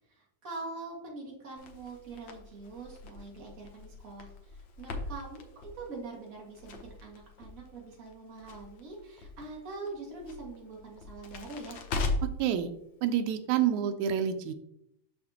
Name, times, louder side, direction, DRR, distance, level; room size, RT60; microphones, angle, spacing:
voice 1, 0.1-11.8, right 3 dB, 35° right, -3 dB, 1.9 m, -44 dB
Crackle, 1.6-12.5, left 2 dB, 85° left, 1.0 m, -40 dB
voice 2, 12.4-12.7 13.0-14.5, right 9 dB, 90° right, 8 dB, 2.0 m, -28 dB
6.6 x 6.6 x 2.8 m, 0.76 s
omnidirectional pair, 3.3 m